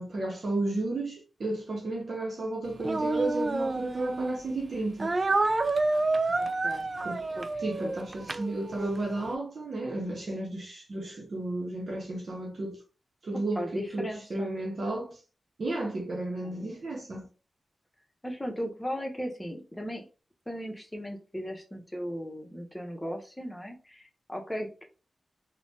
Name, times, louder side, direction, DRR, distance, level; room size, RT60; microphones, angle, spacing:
voice 1, 0.0-5.1 7.0-7.3 7.6-12.8 13.2-15.2 15.6-17.3, right 2 dB, 65° right, 0.7 m, -33 dB
Speech, 2.8-4.4 5.0-9.0, right 3 dB, 45° right, 0.3 m, -29 dB
voice 2, 6.3-6.9 7.4-7.5 7.8-8.0 13.3-14.5 16.4-16.7 18.2-20.0 20.5-24.8, equal, 15° left, 0.8 m, -37 dB
3.2 x 2.1 x 2.7 m
cardioid pair, 50°, 0 cm